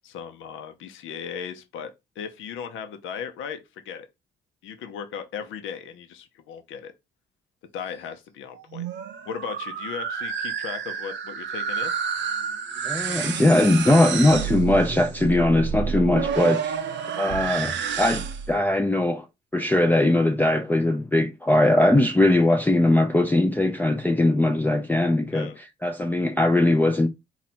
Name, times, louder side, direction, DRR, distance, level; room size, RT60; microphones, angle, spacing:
voice 1, 0.0-1.9 2.2-3.6 3.8-4.1 4.6-6.9 7.7-8.9 9.3-11.9 25.3-25.6, left 7 dB, 85° left, 0.7 m, -36 dB
sound 1, 8.5-18.6, right 7 dB, 65° right, 0.6 m, -29 dB
voice 2, 12.9-16.8 17.2-19.3 19.5-27.1, left 1 dB, 10° left, 0.4 m, -20 dB
4.2 x 2.4 x 4.2 m
cardioid pair, 90°, 20 cm